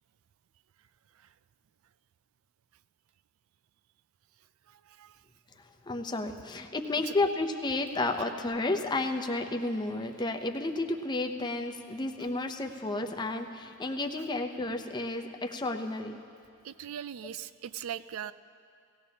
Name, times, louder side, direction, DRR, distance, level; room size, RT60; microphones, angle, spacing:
voice 1, 4.7-5.2 7.1-7.2 16.6-18.3, right 9 dB, 65° right, 15 dB, 0.3 m, -40 dB
voice 2, 5.9-16.2, left 2 dB, 20° left, 5 dB, 0.6 m, -32 dB
18.0 x 15.5 x 2.8 m, 2.3 s
head